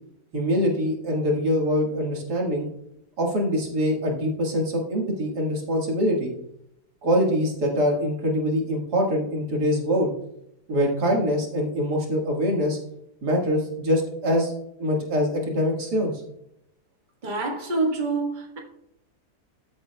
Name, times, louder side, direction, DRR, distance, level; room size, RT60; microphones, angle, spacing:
voice 1, 0.3-2.7 3.2-6.3 7.0-10.1 10.7-12.8 13.2-14.5 14.8-16.1, equal, 90° right, 2.3 m, -24 dB
voice 2, 17.2-18.6, right 3 dB, 30° right, 1.5 m, -26 dB
13.5 x 7.4 x 2.2 m
omnidirectional pair, 1.7 m